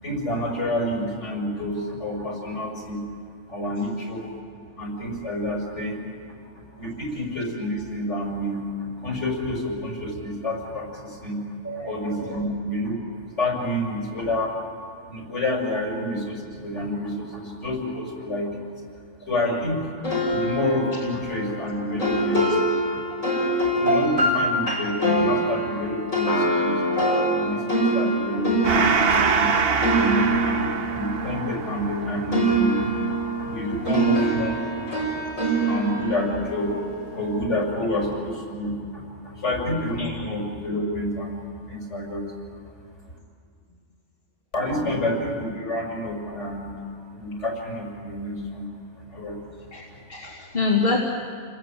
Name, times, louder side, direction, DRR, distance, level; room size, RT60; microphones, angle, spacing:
voice 1, 0.0-3.0 3.5-4.3 4.8-6.4 6.8-13.0 13.4-14.5 15.1-18.6 19.3-19.9 20.3-23.0 23.8-26.8 27.3-35.1 35.6-41.4 41.7-42.3 44.5-48.7 49.1-49.4, left 1 dB, 60° left, -1 dB, 6.9 m, -29 dB
voice 2, 11.6-12.4 40.0-40.1 49.7-49.8 50.1-51.0, left 3 dB, 45° left, -3 dB, 2.8 m, -26 dB
sound 1, 20.0-32.0 32.3-37.5, right 1 dB, 75° left, 6.6 m, -25 dB
Gong, 28.6-35.6, right 5 dB, 50° right, 1.2 m, -25 dB
29.5 x 21.0 x 9.3 m, 2.2 s
omnidirectional pair, 1.4 m